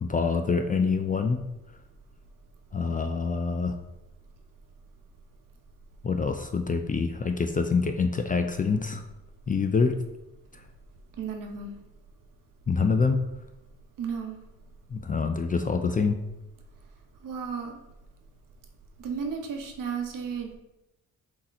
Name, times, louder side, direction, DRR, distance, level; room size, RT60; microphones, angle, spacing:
voice 1, 0.0-1.4 2.7-3.7 6.0-9.0 9.5-9.9 10.5-10.6 12.7-13.2 14.9-16.2, left 4 dB, 25° left, 6 dB, 0.4 m, -26 dB
voice 2, 11.2-11.7 14.0-14.4 17.2-17.8 19.0-20.6, right 6 dB, 60° right, 3 dB, 0.9 m, -33 dB
3.8 x 2.9 x 4.2 m, 0.95 s
supercardioid pair, 50°, 36 cm